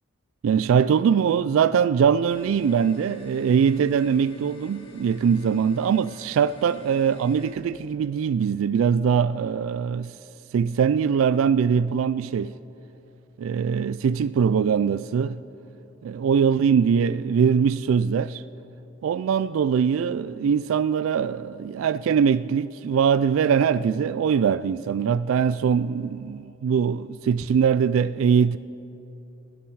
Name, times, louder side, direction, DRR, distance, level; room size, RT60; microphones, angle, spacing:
voice 1, 0.4-10.2 10.5-12.5 13.4-15.4 16.0-18.4 19.0-28.6, right 7 dB, 90° right, 0.3 m, -22 dB
sound 1, 2.3-7.5, right 1 dB, 25° left, 2.5 m, -47 dB
29.5 x 10.5 x 4.7 m
head